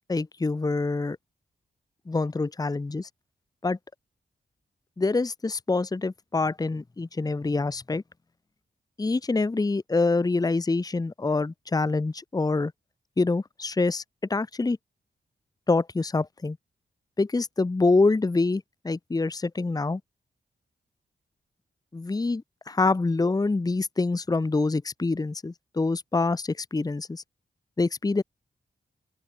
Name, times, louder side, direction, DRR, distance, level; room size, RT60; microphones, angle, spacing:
voice 1, 0.1-1.2 2.1-3.1 3.6-3.8 5.0-8.0 9.0-12.7 13.2-14.0 14.3-14.8 15.7-16.6 17.2-20.0 21.9-27.2 27.8-28.2, left 3 dB, 20° left, 0.9 m, -26 dB
open air
wide cardioid pair, 105°, 18 cm